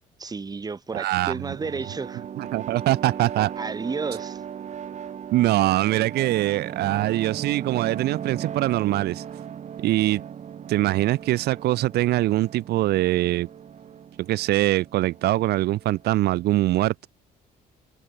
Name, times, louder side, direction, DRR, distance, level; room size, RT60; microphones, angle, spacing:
voice 1, 0.2-2.3 3.6-4.4, right 4 dB, 25° right, 1.9 m, -32 dB
voice 2, 0.9-1.5 2.4-3.5 5.3-9.2 9.8-10.2 10.7-13.5 14.2-17.1, right 16 dB, 75° right, 0.9 m, -23 dB
sound 1, 1.1-16.5, right 8 dB, 45° right, 1.9 m, -38 dB
cardioid pair, 110°, 17 cm